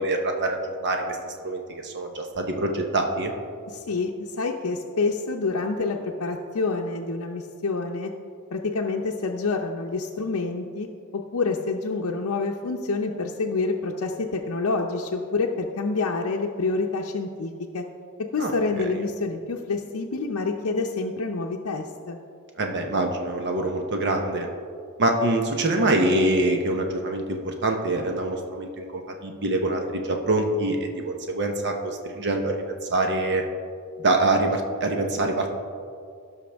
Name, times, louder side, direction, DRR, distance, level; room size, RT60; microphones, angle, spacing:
voice 1, 0.0-3.3 18.4-18.8 22.6-24.5 25.0-33.4 34.0-35.5, right 2 dB, 55° right, 3 dB, 0.9 m, -25 dB
voice 2, 3.7-8.1 8.5-10.9 11.1-17.8 18.3-22.2, left 3 dB, 75° left, 0 dB, 0.6 m, -27 dB
17.0 x 5.8 x 3.4 m, 2.3 s
head